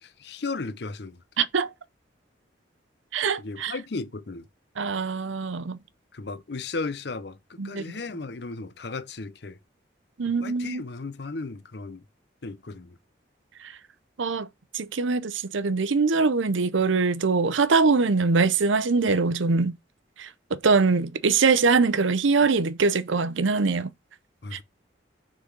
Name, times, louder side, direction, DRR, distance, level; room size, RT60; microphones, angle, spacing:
voice 1, 0.0-1.2 3.4-4.5 6.1-9.6 10.4-12.0 12.4-13.0 24.4-24.6, left 3 dB, 60° left, 0.7 m, -35 dB
voice 2, 1.4-1.7 3.1-3.7 4.8-5.8 7.6-7.8 10.2-10.8 14.2-14.5 14.7-19.8 20.2-23.9 24.5-24.6, right 4 dB, 85° right, 0.7 m, -23 dB
6.6 x 4.0 x 6.0 m
head